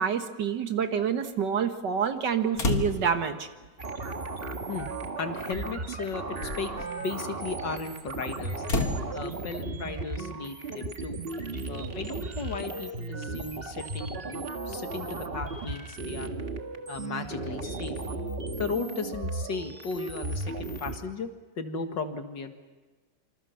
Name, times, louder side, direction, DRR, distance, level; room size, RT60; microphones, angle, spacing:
voice 1, 0.0-3.5, right 7 dB, 70° right, 7 dB, 2.1 m, -27 dB
sound 1, 2.6-3.3 4.5-4.6 5.5-5.7 6.2-6.9 8.6-9.0, left 3 dB, 55° left, 2.1 m, -29 dB
sound 2, 3.8-21.0, right 3 dB, 35° right, 1.8 m, -35 dB
voice 2, 5.2-6.3 6.6-6.7 7.0-8.6 9.1-11.2 11.7-16.4 16.9-18.0 18.6-21.3 21.6-22.5, left 4 dB, 80° left, 6 dB, 2.5 m, -36 dB
27.0 x 26.5 x 5.8 m, 1.3 s
omnidirectional pair, 1.9 m